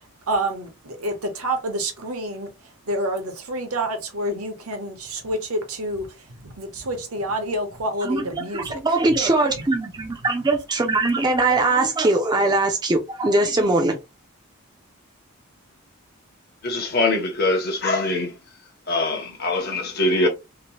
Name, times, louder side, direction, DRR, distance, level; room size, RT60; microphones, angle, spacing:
voice 1, 0.3-2.5 2.9-6.1 6.4-8.8, right 1 dB, 75° right, 0.9 m, -28 dB
voice 2, 8.0-14.0, right 2 dB, 20° right, 0.4 m, -21 dB
voice 3, 16.6-18.3 18.9-20.3, left 2 dB, 45° left, 0.7 m, -22 dB
2.9 x 2.0 x 2.9 m
head